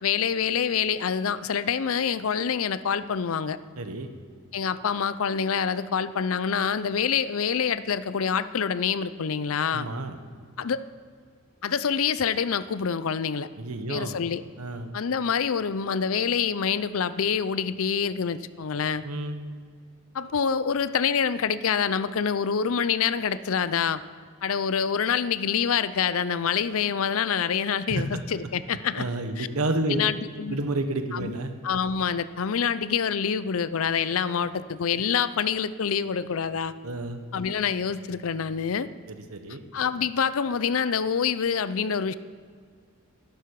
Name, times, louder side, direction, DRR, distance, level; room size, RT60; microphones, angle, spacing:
voice 1, 0.0-3.6 4.5-9.9 10.6-10.8 11.6-13.5 13.9-14.4 14.9-19.0 20.1-24.0 24.4-29.1 29.4-29.5 29.9-30.6 31.1-31.3 31.6-36.7 37.3-38.9 39.7-42.1, left 7 dB, 70° left, 15 dB, 0.5 m, -26 dB
voice 2, 3.8-4.1 9.7-10.2 13.6-14.2 14.6-14.9 19.0-19.4 27.8-28.2 28.9-30.0 30.5-31.6 36.8-37.2 39.1-39.6, right 2 dB, 85° right, 7 dB, 1.3 m, -30 dB
18.0 x 11.5 x 4.8 m, 2.1 s
head